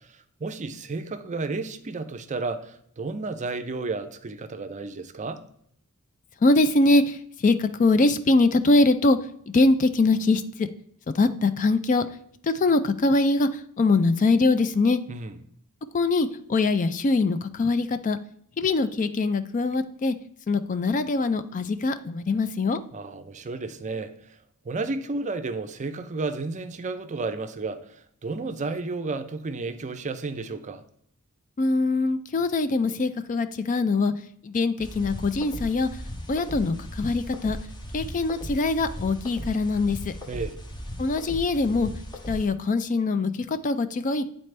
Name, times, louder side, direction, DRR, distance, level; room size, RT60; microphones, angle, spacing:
voice 1, 0.4-5.4 15.1-15.3 22.9-24.1 24.7-30.8 40.3-40.6, right 3 dB, 35° right, 0.5 m, -32 dB
voice 2, 6.4-9.2 9.5-10.7 11.1-12.1 12.4-15.0 15.9-18.2 18.6-20.1 20.5-22.8 31.6-34.1 34.4-35.9 36.3-37.6 37.9-40.1 41.0-41.9 42.3-44.2, left 3 dB, 35° left, 0.4 m, -23 dB
sound 1, 34.8-42.5, equal, 20° left, 0.7 m, -37 dB
9.4 x 4.2 x 3.2 m
head